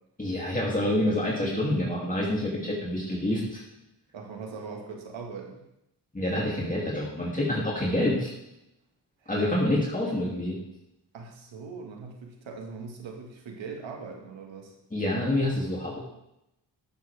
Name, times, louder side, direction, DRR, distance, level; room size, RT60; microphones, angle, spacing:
voice 1, 0.2-3.6 6.1-8.3 9.3-10.5 14.9-16.0, left 1 dB, 20° left, -5 dB, 2.8 m, -27 dB
voice 2, 4.1-5.6 9.2-9.5 11.1-14.7, right 5 dB, 85° right, 1 dB, 1.9 m, -40 dB
12.0 x 7.2 x 3.5 m, 0.84 s
cardioid pair, 60°, 44 cm